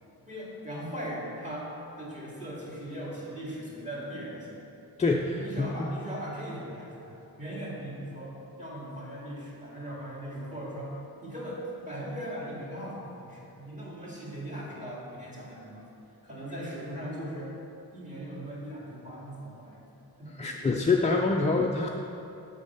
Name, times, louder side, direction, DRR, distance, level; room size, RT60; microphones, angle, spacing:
voice 1, 0.3-1.7 2.0-4.6 5.1-10.9 11.2-11.6 11.8-15.8 16.2-17.5 17.9-19.8 20.2-20.5, equal, 20° right, -6 dB, 2.1 m, -39 dB
voice 2, 5.0-5.7 20.4-21.9, left 3 dB, 20° left, -1 dB, 0.4 m, -25 dB
8.3 x 5.4 x 6.8 m, 2.7 s
wide cardioid pair, 180°, 38 cm